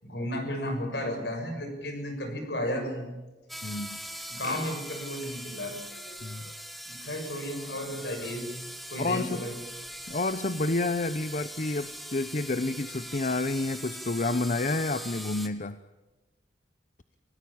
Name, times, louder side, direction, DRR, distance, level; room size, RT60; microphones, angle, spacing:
voice 1, 0.0-3.1 4.3-5.8 6.0-6.5 6.9-8.6 8.9-9.5, left 1 dB, 65° left, 5 dB, 6.7 m, -34 dB
sound 1, 3.5-15.5, equal, ahead, 1.6 m, -41 dB
voice 2, 3.6-4.0 6.2-6.5 9.0-9.4 10.1-15.8, left 2 dB, 45° left, 12 dB, 0.8 m, -29 dB
27.0 x 18.0 x 8.8 m, 1.2 s
head